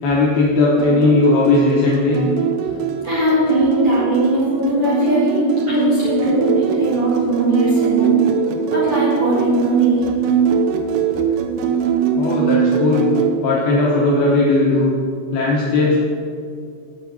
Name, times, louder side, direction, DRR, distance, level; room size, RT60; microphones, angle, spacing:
voice 1, 0.0-2.2 12.2-13.1 13.4-14.9 15.3-16.0, left 2 dB, 75° left, -4 dB, 2.3 m, -16 dB
sound 1, 0.8-13.3, right 7 dB, 90° right, 3.5 m, -21 dB
voice 2, 3.0-8.2 8.7-10.0, equal, 60° right, -9 dB, 1.4 m, -19 dB
7.6 x 6.0 x 7.5 m, 2.3 s
omnidirectional pair, 5.8 m